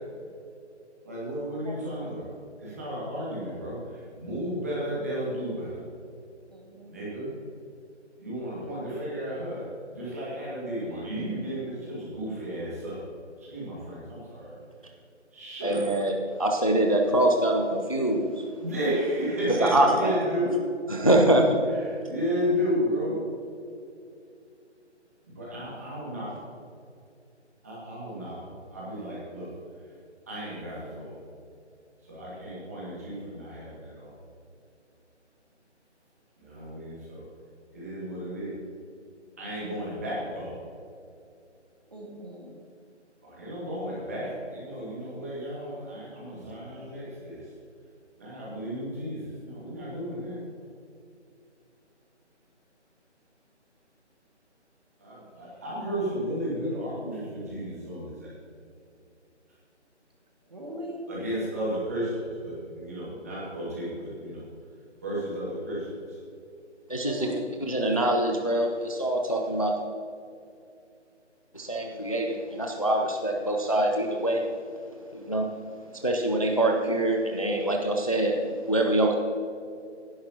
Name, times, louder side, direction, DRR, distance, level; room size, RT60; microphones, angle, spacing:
voice 1, 1.0-2.2 2.6-5.8 6.9-7.3 8.2-13.0 13.4-14.5 15.3-15.9 18.6-20.5 21.7-23.2 25.3-26.5 27.6-29.5 30.3-31.2 32.0-34.1 36.4-37.3 37.7-38.6 39.4-40.6 43.2-47.5 48.2-50.4 55.0-58.3 61.1-64.5 65.0-66.2, equal, 15° right, -7 dB, 2.0 m, -33 dB
voice 2, 1.6-2.2 6.5-7.0 41.9-42.6 46.4-46.6 60.5-61.0 67.0-67.4, right 2 dB, 35° right, -1 dB, 2.0 m, -40 dB
voice 3, 15.6-16.1 16.4-18.4 19.6-20.2 20.9-21.6 66.9-67.2 67.7-69.8 71.5-74.4 75.1-75.5 76.0-79.1, right 1 dB, 30° left, 2 dB, 0.6 m, -24 dB
16.5 x 10.5 x 2.9 m, 2.5 s
figure-of-eight pair, 175°, 36 cm